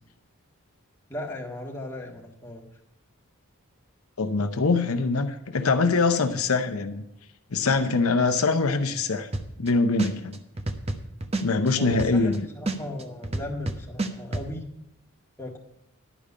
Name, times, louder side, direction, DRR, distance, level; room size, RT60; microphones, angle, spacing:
voice 1, 1.1-2.6 11.8-14.7 15.4-15.6, left 1 dB, 10° left, -2 dB, 1.7 m, -36 dB
voice 2, 4.2-7.0 7.5-9.3 9.6-10.3 11.4-12.4, left 3 dB, 80° left, 7 dB, 0.8 m, -23 dB
sound 1, 9.3-9.7 10.0-12.4 12.7-14.5, right 2 dB, 30° right, 0.8 m, -29 dB
11.0 x 5.2 x 8.4 m, 0.81 s
head